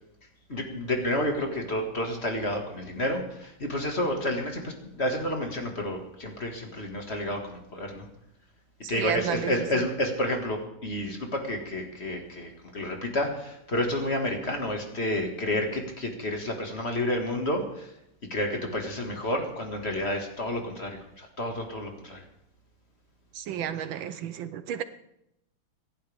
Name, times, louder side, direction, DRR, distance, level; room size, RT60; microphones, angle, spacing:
voice 1, 0.5-8.1 8.9-17.9 18.3-22.2, left 1 dB, 30° left, 3 dB, 2.0 m, -30 dB
voice 2, 8.8-9.5 23.3-24.8, right 9 dB, 75° right, 12 dB, 1.4 m, -32 dB
26.0 x 11.5 x 3.5 m, 0.81 s
omnidirectional pair, 2.3 m